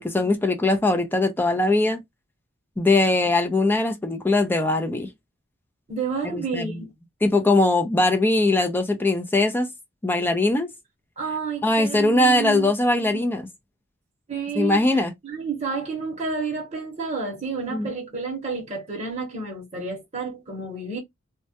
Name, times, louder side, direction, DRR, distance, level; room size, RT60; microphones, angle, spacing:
voice 1, 0.0-2.0 2.8-5.1 6.2-6.8 7.2-9.7 10.0-10.7 11.6-13.5 14.6-15.1 17.7-17.9, left 2 dB, 10° left, 0.4 m, -21 dB
voice 2, 5.9-6.9 11.2-13.2 14.3-21.0, right 4 dB, 35° right, 0.8 m, -30 dB
2.2 x 2.1 x 2.7 m
head